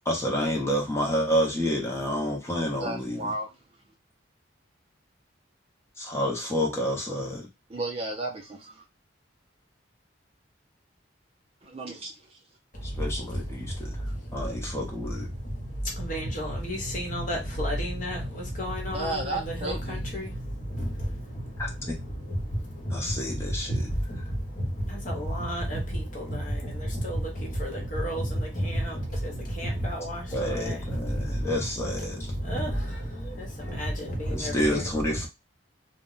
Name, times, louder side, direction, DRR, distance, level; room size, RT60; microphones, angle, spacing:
voice 1, 0.1-3.3 6.0-7.5 12.8-14.0 14.3-15.3 21.6-22.0 22.9-23.7 30.3-32.2 34.3-35.3, equal, 15° left, 0.7 m, -29 dB
voice 2, 2.8-3.5 7.7-8.8 11.6-12.4 18.9-20.0, right 2 dB, 30° right, 0.4 m, -33 dB
voice 3, 12.7-35.3, equal, 40° left, 0.9 m, -32 dB
2.1 x 2.1 x 3.8 m
head